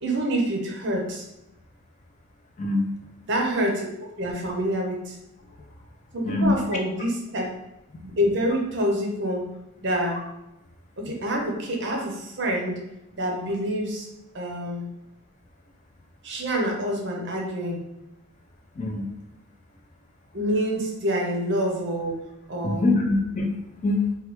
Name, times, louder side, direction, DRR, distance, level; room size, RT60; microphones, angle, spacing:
voice 1, 0.0-1.2 3.3-3.9 4.2-5.2 6.1-7.5 8.0-9.4 9.8-10.2 11.0-12.8 13.1-14.1 14.3-14.9 16.2-17.8 20.3-22.2 22.5-22.9, equal, 50° right, 0 dB, 0.7 m, -26 dB
voice 2, 2.6-3.0 6.2-6.5 7.9-8.0 18.8-19.1 22.6-23.6 23.8-24.1, left 2 dB, 30° left, 2 dB, 0.3 m, -24 dB
3.2 x 2.3 x 3.0 m, 0.93 s
head